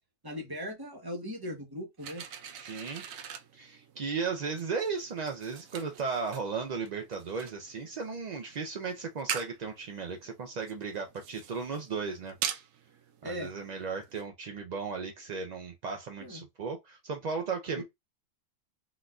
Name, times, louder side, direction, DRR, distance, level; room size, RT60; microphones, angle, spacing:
voice 1, 0.2-2.2 13.2-13.5 16.2-16.5 17.8-17.9, equal, 20° right, 0.9 m, -39 dB
sound 1, 2.0-14.3, right 9 dB, 90° right, 1.0 m, -43 dB
voice 2, 2.6-3.0 3.5-12.4 13.2-17.8, right 5 dB, 65° right, 0.4 m, -35 dB
3.8 x 2.4 x 2.3 m
omnidirectional pair, 1.3 m